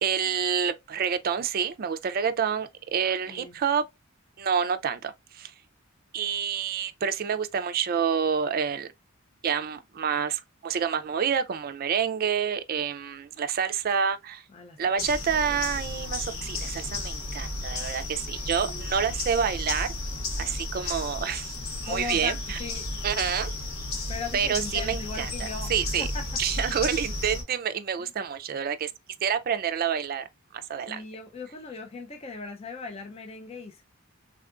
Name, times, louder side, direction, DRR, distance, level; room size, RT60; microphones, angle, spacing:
voice 1, 0.0-3.8 4.4-5.5 6.1-8.9 9.4-14.4 14.8-19.9 20.4-21.5 21.8-22.6 23.0-23.5 24.3-25.3 25.7-26.1 26.4-28.9 29.2-30.2 30.5-31.0, right 7 dB, 45° right, 0.4 m, -28 dB
voice 2, 3.3-3.6 14.5-15.1 15.3-15.7 18.6-19.1 21.8-22.9 24.1-25.7 26.0-26.3 28.0-28.1 30.9-33.8, left 4 dB, 30° left, 0.4 m, -39 dB
sound 1, 15.0-27.4, left 2 dB, 75° left, 1.0 m, -33 dB
3.6 x 2.3 x 2.4 m
head